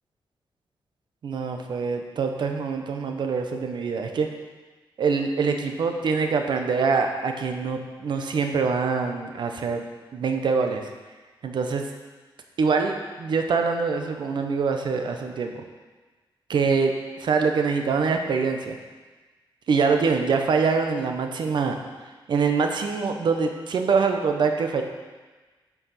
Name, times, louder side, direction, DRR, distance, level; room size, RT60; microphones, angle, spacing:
voice 1, 1.2-4.3 5.0-9.8 10.1-10.9 11.4-11.8 12.6-15.6 16.5-18.8 19.7-21.8 22.3-24.8, right 5 dB, 60° right, 5 dB, 0.7 m, -24 dB
8.1 x 4.8 x 5.6 m, 1.3 s
wide cardioid pair, 180°, 9 cm